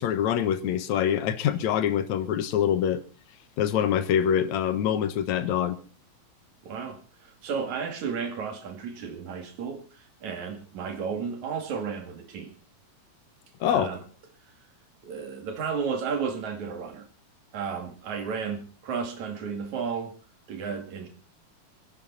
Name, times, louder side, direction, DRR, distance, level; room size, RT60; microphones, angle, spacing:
voice 1, 0.0-3.0 3.6-5.8 13.6-13.9, left 9 dB, 70° left, 2.6 m, -25 dB
voice 2, 6.6-12.5 13.6-14.0 15.0-17.1 17.5-20.2 20.5-21.1, right 6 dB, 70° right, 3.8 m, -33 dB
24.5 x 11.5 x 4.2 m
omnidirectional pair, 3.5 m